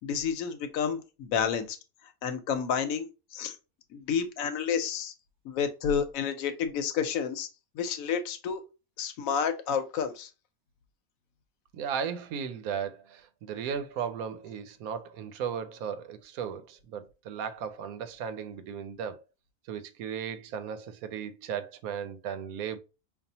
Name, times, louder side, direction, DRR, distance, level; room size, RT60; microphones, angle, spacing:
voice 1, 0.0-1.8 2.2-3.6 3.9-5.1 5.4-7.5 7.7-8.6 9.0-10.3, left 7 dB, 75° left, 1.0 m, -30 dB
voice 2, 11.7-19.2 19.7-22.8, right 7 dB, 90° right, 1.1 m, -36 dB
5.3 x 2.3 x 2.7 m
omnidirectional pair, 1.5 m